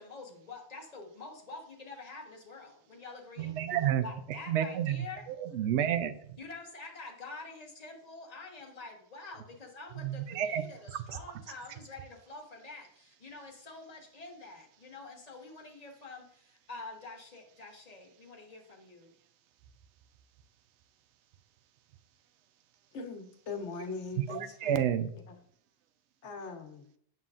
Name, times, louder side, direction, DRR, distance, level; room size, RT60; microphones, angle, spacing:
voice 1, 0.0-3.6 4.0-5.3 6.4-19.1 23.5-24.2, left 3 dB, 35° left, 1 dB, 1.2 m, -47 dB
voice 2, 3.4-4.0 4.5-5.1 5.4-6.2 10.0-10.6 24.3-25.1, right 10 dB, 80° right, 11 dB, 0.9 m, -30 dB
voice 3, 22.9-25.4 26.2-26.8, left 4 dB, 80° left, 5 dB, 1.2 m, -41 dB
7.3 x 5.9 x 2.4 m, 0.65 s
omnidirectional pair, 1.2 m